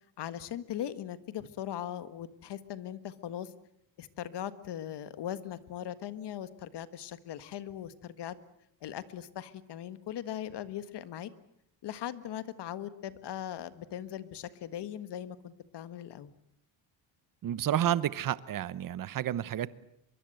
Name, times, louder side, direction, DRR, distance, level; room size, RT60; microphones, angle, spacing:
voice 1, 0.2-3.5 4.0-8.4 8.8-11.3 11.8-16.3, left 11 dB, 60° left, 13 dB, 1.6 m, -39 dB
voice 2, 17.4-19.7, right 11 dB, 45° right, 17 dB, 1.0 m, -30 dB
24.0 x 23.0 x 7.9 m, 0.76 s
cardioid pair, 130°, 47 cm